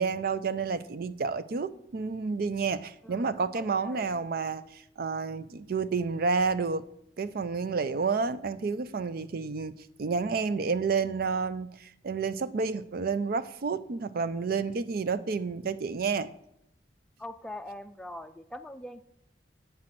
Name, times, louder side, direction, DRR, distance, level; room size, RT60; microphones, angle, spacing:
voice 1, 0.0-6.8 7.2-16.3, right 4 dB, 55° right, 0.5 m, -30 dB
voice 2, 3.0-4.1 17.2-19.0, left 1 dB, 5° left, 0.4 m, -43 dB
8.6 x 7.6 x 5.9 m
head